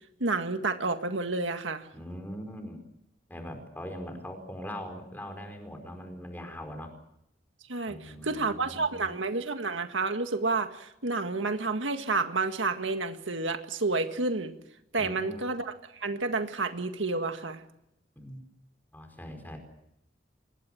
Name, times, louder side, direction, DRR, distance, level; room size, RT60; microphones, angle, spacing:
voice 1, 0.2-1.9 7.7-14.5 14.9-17.6, right 3 dB, 85° right, 7 dB, 1.9 m, -30 dB
voice 2, 1.9-2.8 3.3-6.9 7.9-9.1 15.0-15.4 18.2-18.4 18.9-19.6, equal, 10° left, 5 dB, 4.8 m, -41 dB
25.5 x 20.5 x 7.7 m, 0.82 s
head